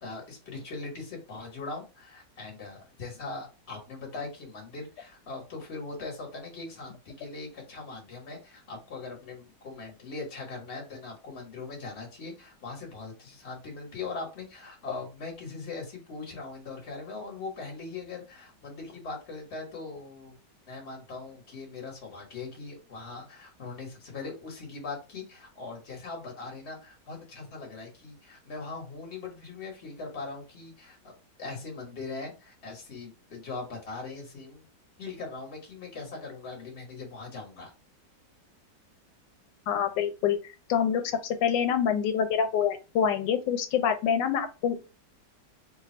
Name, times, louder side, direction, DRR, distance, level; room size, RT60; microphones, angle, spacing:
voice 1, 0.0-20.3 20.7-31.1 31.4-34.6 35.0-37.7, left 3 dB, 40° left, 0 dB, 1.5 m, -40 dB
voice 2, 39.7-41.0 41.4-44.8, left 8 dB, 90° left, 7 dB, 1.3 m, -26 dB
3.3 x 2.3 x 4.2 m, 0.30 s
omnidirectional pair, 1.9 m